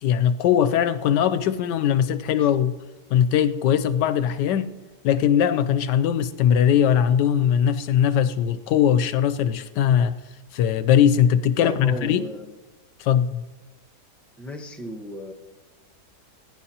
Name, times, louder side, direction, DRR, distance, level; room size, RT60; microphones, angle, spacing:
voice 1, 0.0-2.8 3.1-4.8 5.0-10.2 10.5-12.3 13.0-13.5, left 9 dB, 80° left, 1.2 m, -20 dB
voice 2, 11.6-12.5 14.4-15.3, left 1 dB, ahead, 0.9 m, -35 dB
21.0 x 11.0 x 2.9 m
omnidirectional pair, 1.8 m